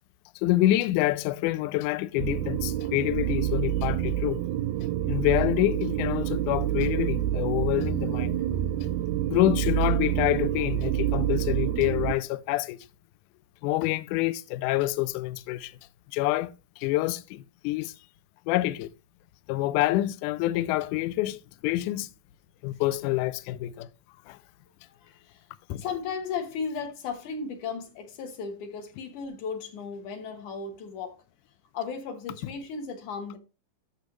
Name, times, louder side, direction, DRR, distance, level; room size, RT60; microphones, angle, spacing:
voice 1, 0.4-4.4 5.1-8.4 9.3-12.8 13.6-15.8 16.1-17.9 18.5-18.9 19.5-22.1 22.6-23.9 24.3-24.4 25.7-25.9, left 16 dB, 85° left, 1.8 m, -27 dB
sound 1, 2.2-12.1, right 12 dB, 85° right, 2.4 m, -27 dB
voice 2, 25.0-25.5 25.8-31.2 31.7-33.4, left 5 dB, 65° left, 2.5 m, -35 dB
12.5 x 6.5 x 3.2 m
omnidirectional pair, 4.2 m